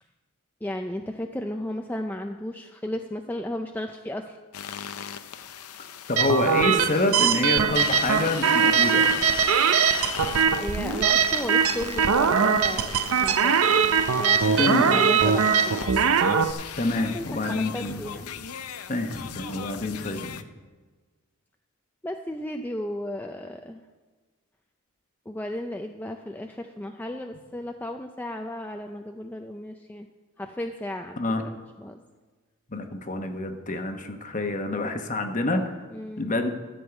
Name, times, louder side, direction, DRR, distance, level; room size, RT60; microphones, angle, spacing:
voice 1, 0.6-4.4 10.6-15.9 17.0-18.3 22.0-23.8 25.3-30.1 30.4-31.2 31.4-32.0 35.9-36.3, left 1 dB, 10° left, 4 dB, 0.4 m, -34 dB
sound 1, 4.5-20.4, left 8 dB, 90° left, 0.6 m, -37 dB
voice 2, 6.1-9.3 14.6-15.0 16.8-18.0 18.9-20.4 31.2-31.4 32.7-35.7 36.2-36.5, left 2 dB, 35° left, 6 dB, 1.0 m, -27 dB
sound 2, 6.2-16.5, right 7 dB, 70° right, 0.5 m, -21 dB
13.0 x 5.4 x 8.1 m, 1.4 s
head